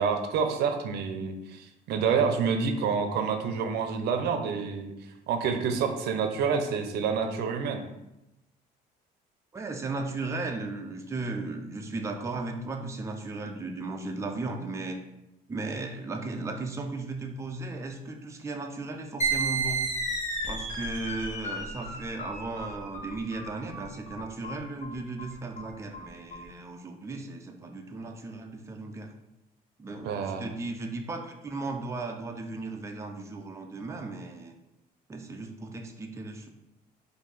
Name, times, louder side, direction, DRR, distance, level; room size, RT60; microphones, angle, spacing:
voice 1, 0.0-4.9 5.3-7.8 30.0-30.5, right 6 dB, 75° right, 6 dB, 0.6 m, -28 dB
voice 2, 9.5-15.0 15.5-19.8 20.5-29.1 29.8-34.5 35.1-36.5, right 3 dB, 15° right, 3 dB, 0.5 m, -36 dB
sound 1, 19.2-26.4, right 3 dB, 45° left, 1.4 m, -33 dB
4.5 x 2.7 x 4.0 m, 0.90 s
cardioid pair, 110°, 17 cm